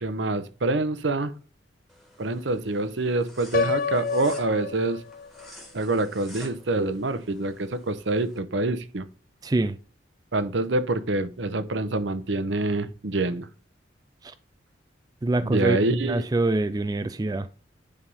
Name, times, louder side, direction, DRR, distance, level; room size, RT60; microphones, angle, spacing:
voice 1, 0.0-1.3 2.2-5.0 5.7-9.1 10.3-13.5 15.4-16.2, right 2 dB, 75° right, 0.8 m, -26 dB
sound 1, 1.9-8.4, equal, ahead, 1.7 m, -50 dB
Piano, 3.5-5.5, left 5 dB, 45° left, 0.6 m, -28 dB
voice 2, 9.4-9.8 14.2-14.3 15.2-15.8 16.0-17.5, right 2 dB, 20° right, 0.3 m, -25 dB
9.8 x 3.5 x 5.4 m
head